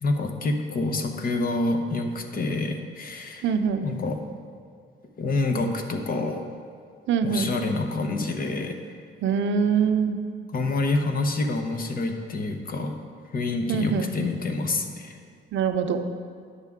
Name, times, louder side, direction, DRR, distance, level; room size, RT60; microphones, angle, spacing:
voice 1, 0.0-3.5 3.8-4.2 5.2-6.4 7.2-8.8 10.5-12.9 13.3-15.1, left 2 dB, 45° left, 4 dB, 0.9 m, -27 dB
voice 2, 3.4-3.9 7.1-7.5 9.2-10.2 13.7-14.1 15.5-16.0, right 6 dB, 70° right, 8 dB, 0.6 m, -23 dB
9.6 x 6.6 x 3.6 m, 2.2 s
cardioid pair, 90°, 20 cm